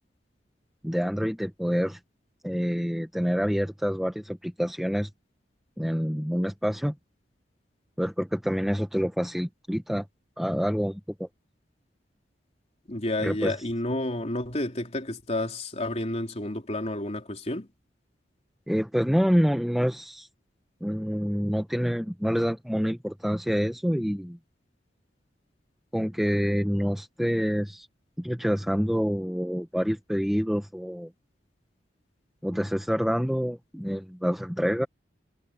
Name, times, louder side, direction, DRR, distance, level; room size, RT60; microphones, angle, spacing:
voice 1, 0.8-2.0 2.4-5.1 5.8-6.9 8.0-10.0 10.4-11.3 13.2-13.5 18.7-20.3 20.8-24.4 25.9-27.9 28.2-31.1 32.4-34.9, equal, ahead, 0.9 m, -27 dB
voice 2, 12.9-17.7, left 1 dB, 40° left, 3.7 m, -30 dB
head